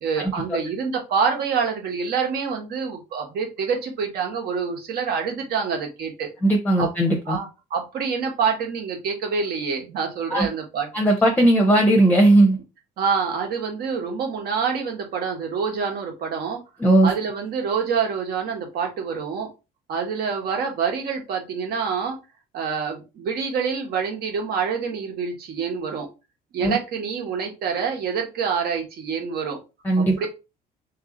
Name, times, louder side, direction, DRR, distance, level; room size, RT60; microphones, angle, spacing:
voice 1, 0.0-6.3 6.8-6.9 7.3-10.9 13.0-16.6 17.0-19.5 19.9-22.2 22.5-26.1 26.5-29.6 30.0-30.3, right 6 dB, 70° right, 1.3 m, -26 dB
voice 2, 6.4-7.4 10.3-10.5 10.9-12.6 16.8-17.1 26.6-26.8 29.8-30.2, right 1 dB, 10° left, 0.7 m, -17 dB
3.1 x 2.7 x 3.8 m
cardioid pair, 110°, 17 cm